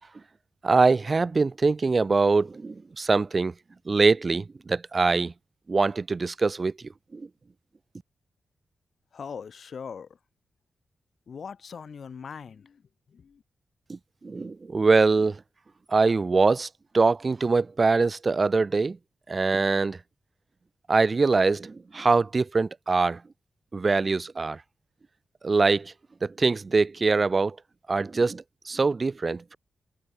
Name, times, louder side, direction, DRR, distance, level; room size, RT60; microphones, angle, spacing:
voice 1, 0.6-3.5 3.9-5.3 5.7-6.7 7.1-7.3 13.9-15.4 15.9-16.7 16.9-19.0 19.3-20.0 20.9-23.2 23.7-24.6 25.4-25.9 26.2-27.6 27.9-29.6, right 4 dB, 35° right, 0.6 m, -23 dB
voice 2, 9.1-10.1 11.3-12.8 13.1-13.4, left 6 dB, 65° left, 2.3 m, -40 dB
wide cardioid pair, 105°, 0 cm